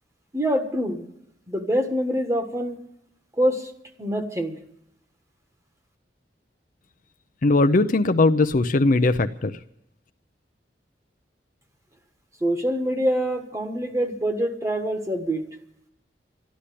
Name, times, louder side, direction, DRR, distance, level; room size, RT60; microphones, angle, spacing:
voice 1, 0.3-1.0 1.5-2.8 3.4-3.7 4.0-4.5 12.4-15.5, equal, 15° right, 5 dB, 1.4 m, -25 dB
voice 2, 7.4-9.6, left 2 dB, 50° left, 9 dB, 0.6 m, -19 dB
13.0 x 11.5 x 8.5 m, 0.81 s
head